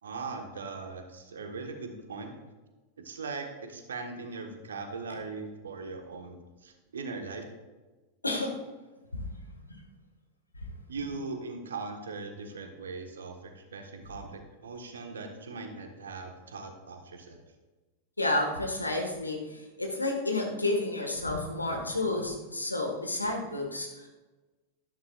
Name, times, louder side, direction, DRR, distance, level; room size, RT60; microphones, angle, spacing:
voice 1, 0.0-2.3 3.0-7.4 10.9-17.4, right 4 dB, 65° right, 4 dB, 1.4 m, -40 dB
voice 2, 8.2-8.5 9.1-9.8 18.2-24.1, left 2 dB, 85° left, 2 dB, 1.6 m, -31 dB
12.0 x 11.5 x 2.5 m, 1.2 s
figure-of-eight pair, 90°, 0 cm